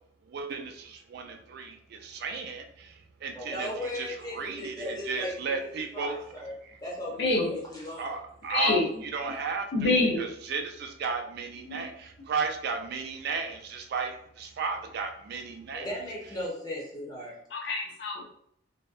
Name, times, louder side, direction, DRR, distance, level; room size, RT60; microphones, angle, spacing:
voice 1, 0.3-2.9 3.2-6.1 8.0-15.9, right 4 dB, 60° right, 5 dB, 0.3 m, -34 dB
voice 2, 3.3-5.7 5.9-6.5 6.8-8.2 15.7-17.4, left 1 dB, 20° left, -4 dB, 0.9 m, -37 dB
voice 3, 7.2-7.5 8.5-8.9 9.7-10.2 11.7-11.8 17.5-18.3, left 2 dB, 65° left, -1 dB, 0.5 m, -26 dB
2.6 x 2.2 x 2.3 m, 0.69 s
head